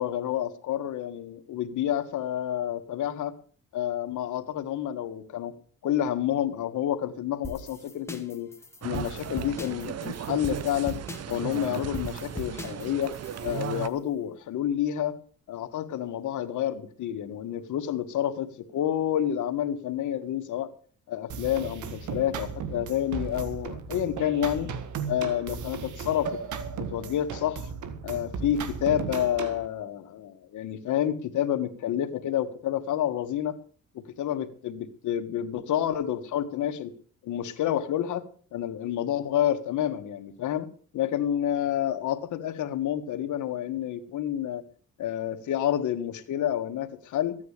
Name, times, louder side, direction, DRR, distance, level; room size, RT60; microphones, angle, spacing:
voice 1, 0.0-3.3 3.7-5.5 5.8-8.5 8.8-11.0 11.3-13.1 13.4-15.1 15.5-20.7 21.1-24.7 25.1-26.4 26.8-27.7 28.0-33.5 33.9-36.9 37.2-38.2 38.5-40.7 40.9-44.6 45.0-47.4, left 11 dB, 75° left, 8 dB, 1.7 m, -29 dB
sound 1, 7.4-13.8, equal, 10° left, 2.2 m, -40 dB
sound 2, 8.8-13.9, right 9 dB, 55° right, 0.9 m, -36 dB
sound 3, 21.3-29.7, right 6 dB, 75° right, 1.8 m, -36 dB
14.5 x 9.5 x 6.6 m, 0.44 s
cardioid pair, 90°, 30 cm